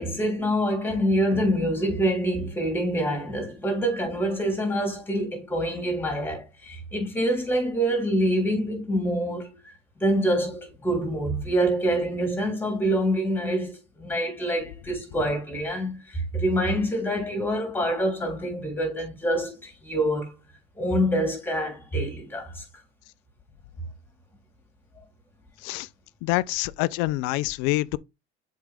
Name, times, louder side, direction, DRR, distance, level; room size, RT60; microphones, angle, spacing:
voice 1, 0.0-9.5 10.0-20.3 20.7-22.6 25.0-25.1, equal, 10° left, 3.3 m, -26 dB
voice 2, 26.2-28.0, left 19 dB, 65° left, 0.5 m, -26 dB
7.4 x 4.6 x 3.5 m
cardioid pair, 155°, 20 cm